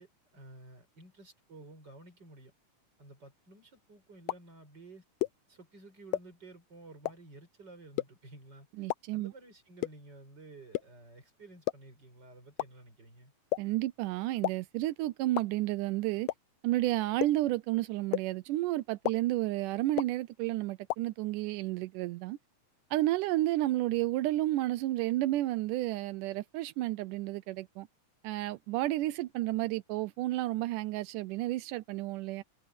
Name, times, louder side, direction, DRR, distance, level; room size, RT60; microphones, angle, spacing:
voice 1, 0.0-2.5 3.0-5.1 5.5-8.9 9.1-13.3, right 2 dB, 30° right, 6.7 m, -53 dB
sound 1, 4.3-4.4 5.2-5.3 6.1-6.2 7.1-7.2 8.0-8.1 8.9-9.0 9.8-9.9 10.7-10.8 11.7-11.8 12.6-12.7 13.5-13.6 14.4-14.5 15.4-15.5 16.3-16.4 17.2-17.3 18.1-18.2 19.0-19.1 20.0-20.1 20.9-21.0, left 16 dB, 75° left, 1.7 m, -29 dB
voice 2, 8.8-9.3 13.6-16.3 16.6-22.4 22.9-27.9 28.2-32.4, right 16 dB, 85° right, 2.2 m, -31 dB
omnidirectional pair, 3.6 m